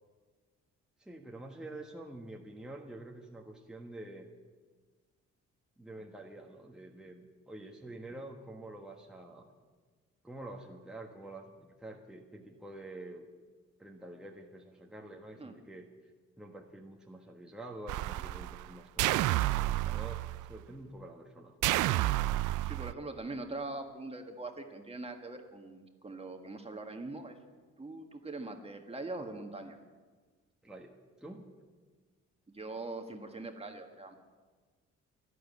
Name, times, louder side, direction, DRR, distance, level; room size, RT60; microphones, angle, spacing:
voice 1, 1.0-4.3 5.8-9.5 10.2-13.2 13.8-15.9 16.4-21.6 30.6-31.5, right 1 dB, ahead, 0 dB, 1.4 m, -47 dB
sound 1, 17.9-18.7 19.0-20.5 21.6-22.9, right 16 dB, 80° right, 0.4 m, -30 dB
voice 2, 22.6-27.4 27.8-29.8 32.5-34.2, right 2 dB, 20° right, 4 dB, 1.6 m, -42 dB
12.0 x 11.5 x 8.5 m, 1.4 s
cardioid pair, 90°, 30 cm